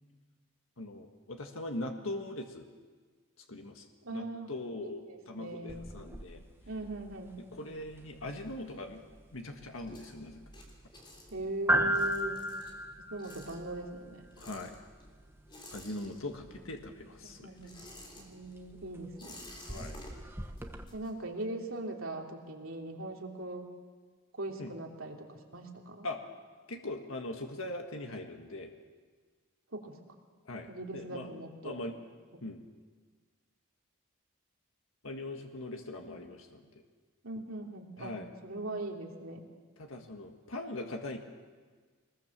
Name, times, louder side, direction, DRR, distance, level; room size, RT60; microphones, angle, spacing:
voice 1, 0.8-2.7 3.5-6.4 7.5-9.0 9.3-10.4 14.4-14.7 15.7-17.6 19.7-20.0 24.6-24.7 26.0-26.2 26.7-28.7 30.5-30.7 30.9-32.0 32.4-32.6 35.0-36.6 38.0-38.3 39.8-41.2, left 2 dB, 85° left, 4 dB, 1.7 m, -41 dB
voice 2, 4.0-4.5 4.8-5.9 6.7-7.4 11.3-12.4 13.1-14.2 17.2-17.8 18.2-19.4 20.9-23.7 24.4-26.1 29.7-29.9 30.7-31.8 36.0-36.1 37.2-38.2 38.4-39.5, right 2 dB, 85° right, 1 dB, 3.2 m, -40 dB
sound 1, 5.7-20.8, right 1 dB, 10° right, 1.1 m, -38 dB
sound 2, 7.5-9.1 9.4-16.7 16.9-21.6, left 1 dB, 25° left, 3.4 m, -53 dB
22.5 x 20.5 x 7.5 m, 1.5 s
head